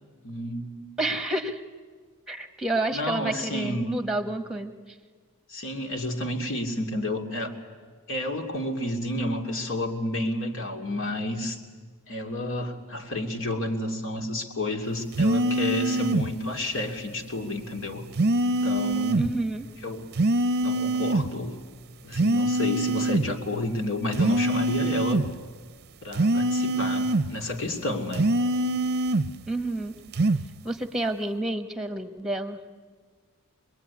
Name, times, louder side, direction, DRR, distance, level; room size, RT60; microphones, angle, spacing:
voice 1, 0.2-0.9 2.9-4.0 5.5-7.6 8.1-11.6 12.1-18.0 18.5-19.3 19.8-20.0 20.6-21.5 22.0-25.2 26.0-28.3, left 1 dB, 60° left, 5 dB, 2.7 m, -30 dB
voice 2, 1.0-1.6 2.3-4.7 19.2-19.7 29.5-30.1 30.6-32.6, right 2 dB, ahead, 8 dB, 1.5 m, -29 dB
sound 1, 15.1-16.3 18.2-19.3 20.2-21.3 22.1-23.3 24.1-25.3 26.1-27.3 28.1-29.3 30.1-30.5, right 1 dB, 50° right, 0.7 m, -24 dB
26.0 x 21.0 x 9.7 m, 1.5 s
head